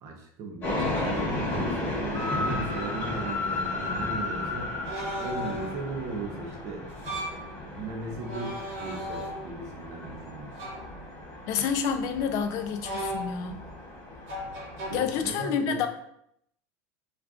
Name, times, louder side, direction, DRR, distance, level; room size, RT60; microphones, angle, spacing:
voice 1, 0.0-4.7 5.2-6.9 7.6-10.5 14.8-15.9, right 3 dB, 40° right, 3 dB, 0.5 m, -37 dB
sound 1, 0.6-15.3, left 2 dB, 25° left, 1.0 m, -34 dB
sound 2, 2.0-2.1 3.0-3.1 4.8-5.9 6.9-7.5 8.2-9.7 10.5-10.9 12.8-13.6 14.3-14.9, equal, 55° right, 1.0 m, -36 dB
voice 2, 11.5-13.6 14.9-15.9, left 7 dB, 45° left, 8 dB, 0.3 m, -28 dB
2.4 x 2.3 x 3.5 m, 0.72 s
supercardioid pair, 155°, 8 cm